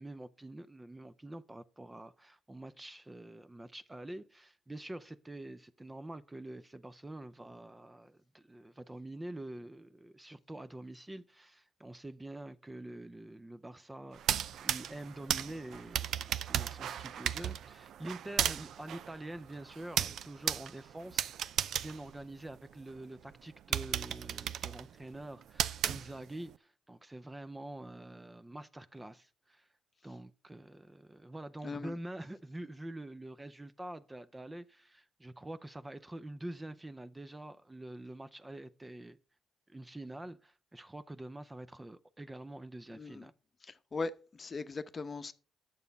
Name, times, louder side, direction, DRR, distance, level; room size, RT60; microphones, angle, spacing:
voice 1, 0.0-21.3 21.8-29.7 30.0-39.2 39.7-43.3, right 1 dB, 15° right, 0.5 m, -46 dB
sound 1, 14.1-22.9 23.3-23.4 23.7-26.5, right 9 dB, 70° right, 0.4 m, -35 dB
voice 2, 31.6-31.9 42.9-43.3 43.6-45.3, left 3 dB, 35° left, 0.8 m, -39 dB
9.3 x 7.0 x 5.3 m
cardioid pair, 90°, 0 cm